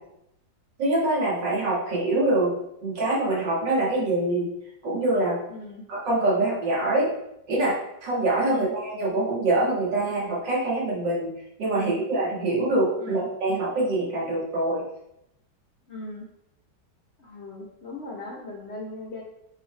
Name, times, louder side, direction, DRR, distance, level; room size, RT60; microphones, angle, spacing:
voice 1, 0.8-2.5 2.8-4.5 4.8-5.4 5.9-7.1 7.5-7.8 8.0-11.3 11.6-14.9, right 2 dB, 85° right, -5 dB, 2.4 m, -24 dB
voice 2, 5.5-5.8 8.4-8.7 11.7-12.0 13.0-13.3 15.9-16.2 17.2-19.2, left 2 dB, 50° left, -1 dB, 0.9 m, -38 dB
8.2 x 3.8 x 3.2 m, 0.80 s
omnidirectional pair, 1.9 m